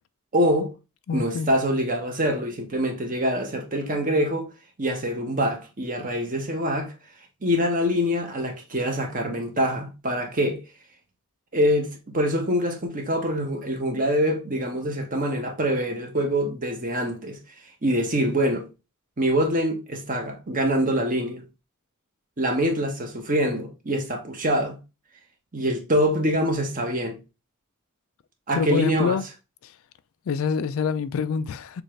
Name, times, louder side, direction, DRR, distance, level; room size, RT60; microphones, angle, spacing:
voice 1, 0.3-0.7 1.1-4.5 4.8-6.9 7.4-10.6 11.5-17.4 17.8-18.7 19.2-21.4 22.4-24.8 25.5-27.2 28.5-29.2, equal, 40° right, 1.1 m, -25 dB
voice 2, 1.1-1.5 28.5-29.3 29.6-29.8 30.3-31.8, left 5 dB, 70° left, 0.4 m, -26 dB
6.5 x 2.5 x 3.1 m
head